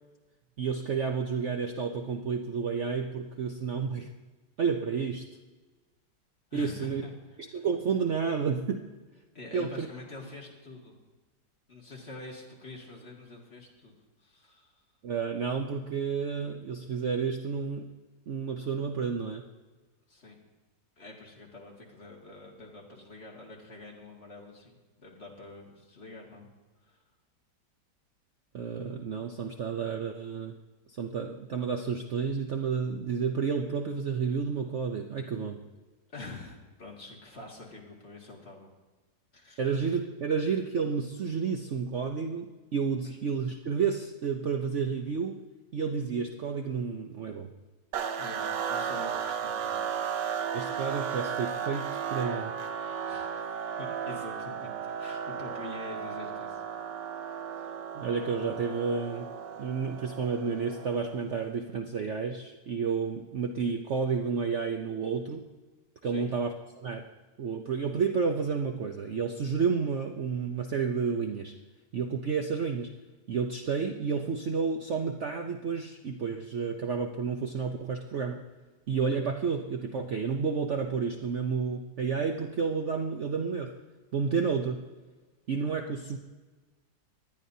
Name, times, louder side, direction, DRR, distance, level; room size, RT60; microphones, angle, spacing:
voice 1, 0.6-4.1 4.6-5.3 6.5-7.0 7.5-8.9 9.5-9.9 15.0-17.9 18.3-19.5 28.5-30.6 30.9-35.6 39.6-45.4 45.7-47.5 50.5-52.6 57.9-59.3 59.6-65.5 66.0-67.1 67.4-71.5 71.9-73.0 73.3-78.5 78.9-83.8 84.1-84.9 85.5-86.2, right 5 dB, 55° right, 4 dB, 0.8 m, -31 dB
voice 2, 6.5-7.1 9.3-11.0 11.7-13.9 14.2-14.8 20.1-20.4 21.0-26.5 26.8-27.0 36.1-38.7 39.3-39.9 43.0-43.2 48.2-49.9 53.1-56.6 57.4-57.7 66.0-66.3, left 2 dB, 35° left, -1 dB, 2.2 m, -46 dB
sound 1, 47.9-61.3, right 7 dB, 80° right, 1.4 m, -35 dB
19.5 x 11.5 x 2.8 m, 1.3 s
omnidirectional pair, 1.9 m